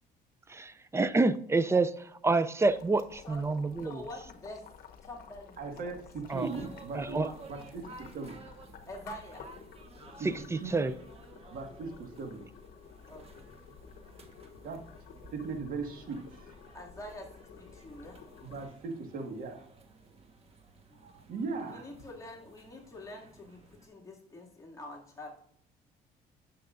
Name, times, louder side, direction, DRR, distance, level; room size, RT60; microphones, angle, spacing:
voice 1, 0.5-4.3 6.3-6.5 6.9-7.3 10.2-11.0, right 3 dB, 15° right, 14 dB, 0.4 m, -28 dB
Boiling, 2.6-18.7, left 7 dB, 60° left, 0.9 m, -52 dB
voice 2, 3.3-4.6 5.0-5.7 6.5-6.7 8.9-9.5 13.1-13.5 16.7-18.2 20.9-21.1 21.7-25.3, left 1 dB, 20° left, -2 dB, 2.3 m, -46 dB
voice 3, 5.6-7.8 8.1-8.3 10.2-10.3 10.6-10.8 11.5-12.4 14.6-14.8 15.3-16.5 18.4-19.7 21.0-21.8, right 4 dB, 55° right, 4 dB, 1.7 m, -38 dB
sound 1, 6.3-23.9, right 3 dB, 35° right, 1.3 m, -55 dB
10.0 x 6.9 x 2.5 m, 0.67 s
cardioid pair, 110°, 17 cm